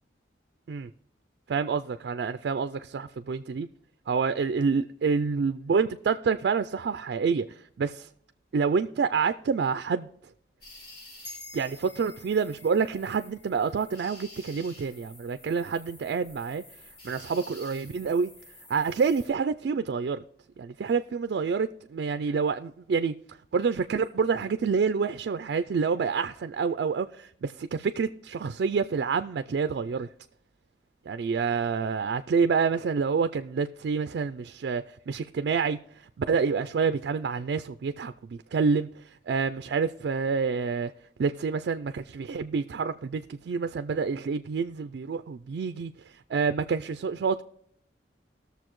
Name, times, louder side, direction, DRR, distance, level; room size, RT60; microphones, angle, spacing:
voice 1, 1.5-3.7 4.1-8.1 8.5-10.1 11.5-16.6 17.0-18.3 18.7-20.2 20.6-23.1 23.5-30.1 31.1-40.9 41.2-45.9 46.3-47.4, right 5 dB, 60° right, 0.3 m, -28 dB
sound 1, 10.6-19.3, left 2 dB, 55° left, 3.1 m, -51 dB
sound 2, 11.2-15.9, left 2 dB, 35° left, 1.9 m, -51 dB
19.0 x 6.8 x 3.0 m
head